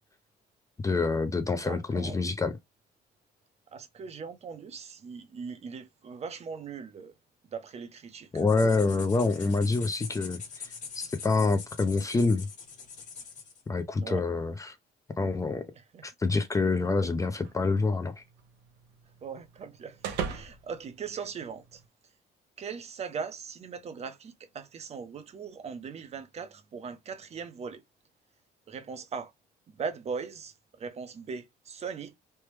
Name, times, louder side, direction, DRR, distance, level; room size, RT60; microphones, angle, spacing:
voice 1, 0.8-2.6 8.3-10.4 10.9-12.5 13.7-14.7 15.2-15.7 16.0-18.2, left 3 dB, 20° left, 0.4 m, -27 dB
voice 2, 1.5-2.2 3.7-7.1 7.5-8.3 14.0-14.2 15.8-16.0 19.2-21.8 22.6-27.8 28.7-29.3 29.7-32.2, right 5 dB, 40° right, 0.6 m, -39 dB
sound 1, 8.4-13.6, left 6 dB, 45° left, 1.3 m, -43 dB
sound 2, 17.4-21.9, right 7 dB, 80° right, 0.7 m, -41 dB
3.3 x 2.1 x 3.1 m
cardioid pair, 110°, 17 cm